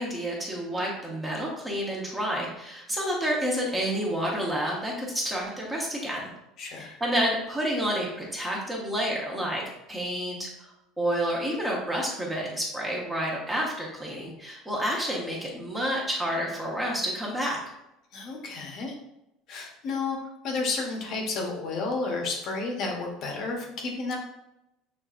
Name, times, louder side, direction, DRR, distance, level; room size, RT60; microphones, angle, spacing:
voice 1, 0.0-6.2 6.8-9.6 9.9-10.5 11.0-17.6, equal, 10° right, -3 dB, 0.9 m, -29 dB
voice 2, 6.6-7.0 18.1-18.9 19.5-20.2 20.4-24.2, left 3 dB, 40° left, 1 dB, 0.9 m, -31 dB
6.5 x 3.3 x 2.4 m, 0.87 s
cardioid pair, 170°, 0 cm